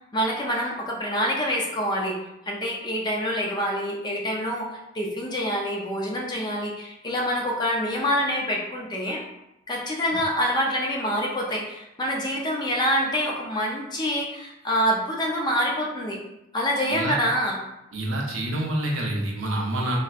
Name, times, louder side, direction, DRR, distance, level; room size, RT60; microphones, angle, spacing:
voice 1, 0.1-2.2 2.5-9.2 9.7-16.2 16.5-17.6, equal, 20° left, -2 dB, 0.5 m, -26 dB
voice 2, 17.9-20.0, right 1 dB, 75° right, -2 dB, 0.7 m, -27 dB
4.1 x 2.1 x 2.4 m, 0.88 s
head